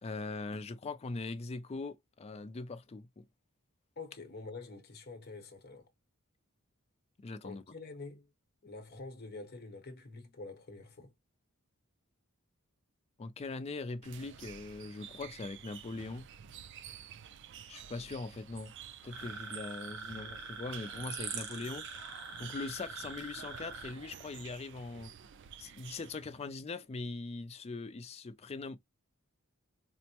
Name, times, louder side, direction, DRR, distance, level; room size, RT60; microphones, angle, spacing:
voice 1, 0.0-3.3 7.2-7.6 13.2-16.2 17.7-18.7 19.0-22.0 22.4-25.1 25.6-28.8, left 3 dB, 30° left, 0.4 m, -41 dB
voice 2, 4.0-5.9 7.4-8.3 8.6-11.1, left 3 dB, 50° left, 1.0 m, -47 dB
sound 1, 14.0-26.5, right 8 dB, 55° right, 0.4 m, -51 dB
sound 2, 19.1-23.9, right 4 dB, 70° right, 1.1 m, -43 dB
4.4 x 2.0 x 2.9 m
head